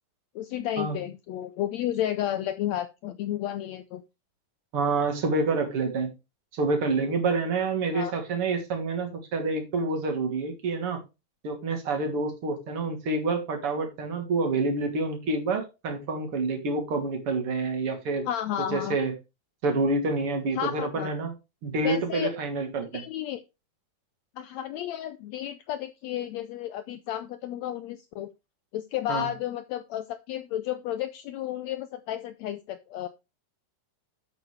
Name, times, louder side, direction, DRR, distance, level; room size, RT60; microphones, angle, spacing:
voice 1, 0.3-4.0 7.9-8.1 18.3-19.0 20.5-21.1 21.8-22.3 22.9-23.4 24.4-28.3 28.7-33.1, left 11 dB, 90° left, 13 dB, 1.5 m, -32 dB
voice 2, 4.7-6.1 6.5-11.0 11.4-18.3 18.7-19.1 19.6-21.3 21.6-23.0 29.1-29.3, right 3 dB, 45° right, 4 dB, 3.2 m, -28 dB
11.0 x 8.2 x 3.2 m, 0.26 s
omnidirectional pair, 3.9 m